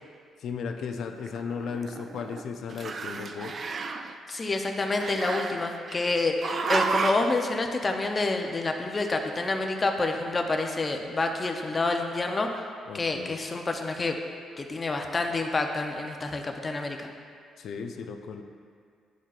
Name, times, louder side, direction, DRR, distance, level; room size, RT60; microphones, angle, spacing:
voice 1, 0.4-3.6 12.9-13.4 17.6-18.4, left 5 dB, 70° left, 5 dB, 0.5 m, -35 dB
Growling, 1.2-2.4 2.7-4.1 5.0-6.0 6.4-7.4, right 4 dB, 45° right, 0.4 m, -31 dB
voice 2, 4.3-6.4 6.7-12.6 12.9-14.2 14.6-17.1, left 3 dB, 30° left, 3 dB, 0.7 m, -28 dB
11.5 x 4.6 x 2.5 m, 2.2 s
cardioid pair, 90°, 0 cm